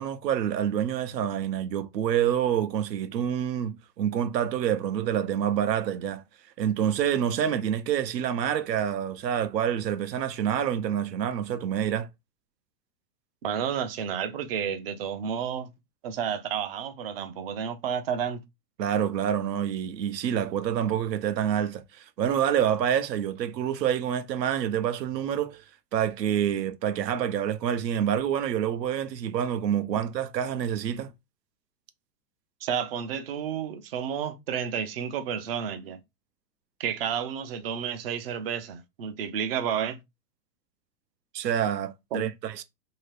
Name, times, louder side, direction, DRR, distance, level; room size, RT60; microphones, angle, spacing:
voice 1, 0.0-6.2 6.6-12.1 18.8-25.6 25.9-31.1 41.3-42.6, right 9 dB, 80° right, 0.8 m, -27 dB
voice 2, 13.4-15.7 16.0-18.4 32.6-36.0 36.8-40.0 42.1-42.2, right 8 dB, 40° right, 0.5 m, -31 dB
2.8 x 2.8 x 3.2 m
hypercardioid pair, 155°, 49 cm